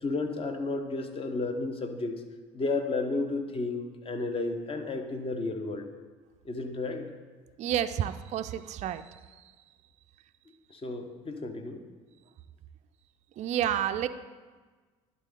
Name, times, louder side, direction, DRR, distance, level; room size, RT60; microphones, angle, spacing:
voice 1, 0.0-2.2 2.5-5.9 6.4-7.1 10.7-11.8, left 3 dB, 35° left, 6 dB, 1.0 m, -32 dB
voice 2, 7.6-9.2 13.4-14.1, right 10 dB, 45° right, 9 dB, 0.4 m, -30 dB
11.0 x 4.0 x 3.7 m, 1.4 s
hypercardioid pair, 60°, 17 cm